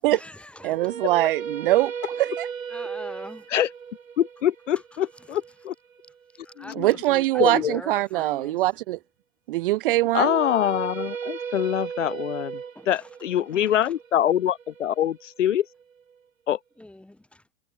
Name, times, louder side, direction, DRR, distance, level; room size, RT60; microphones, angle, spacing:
voice 1, 0.1-1.0 2.7-3.5 5.3-5.4 6.4-8.7 12.8-13.1 13.4-13.9 16.8-17.4, left 1 dB, 5° left, 2.0 m, -43 dB
voice 2, 0.6-1.9 2.2-2.5 6.8-9.0 9.5-10.4, right 17 dB, 40° right, 0.7 m, -22 dB
sound 1, 0.6-6.7 9.9-16.0, right 7 dB, 75° right, 1.8 m, -36 dB
voice 3, 4.2-5.7 6.6-6.9 7.4-7.8 10.1-12.6 12.9-15.7 16.5-16.6, left 11 dB, 60° left, 1.1 m, -24 dB
figure-of-eight pair, 95°, 41 cm